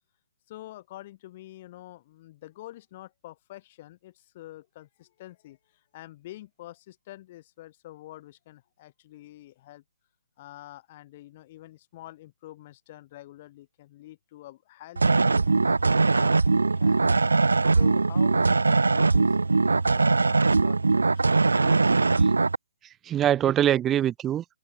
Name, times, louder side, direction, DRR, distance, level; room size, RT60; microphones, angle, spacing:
voice 1, 0.5-9.8 10.4-17.0 17.7-21.9, left 15 dB, 35° left, 6.8 m, -47 dB
sound 1, 15.0-22.6, right 3 dB, 80° right, 2.2 m, -21 dB
voice 2, 21.6-22.3 23.0-24.4, right 11 dB, 15° right, 0.9 m, -25 dB
open air
figure-of-eight pair, 140°, 0 cm